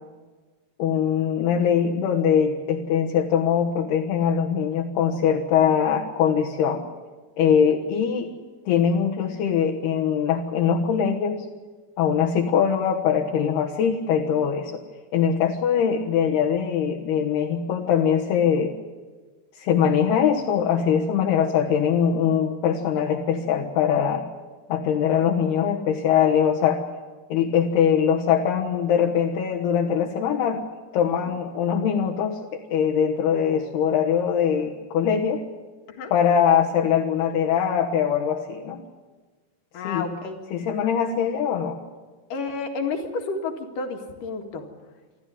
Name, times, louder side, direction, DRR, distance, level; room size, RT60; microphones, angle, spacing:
voice 1, 0.8-6.8 7.4-8.3 8.7-11.4 12.0-14.8 15.1-18.7 19.6-24.2 24.7-26.8 27.3-30.6 30.9-35.4 36.1-38.8 39.8-40.1 40.5-41.8, left 8 dB, 70° left, -1 dB, 3.1 m, -22 dB
voice 2, 39.7-40.4 42.3-44.7, left 4 dB, 55° left, 4 dB, 3.1 m, -31 dB
27.0 x 13.0 x 9.5 m, 1.3 s
omnidirectional pair, 5.3 m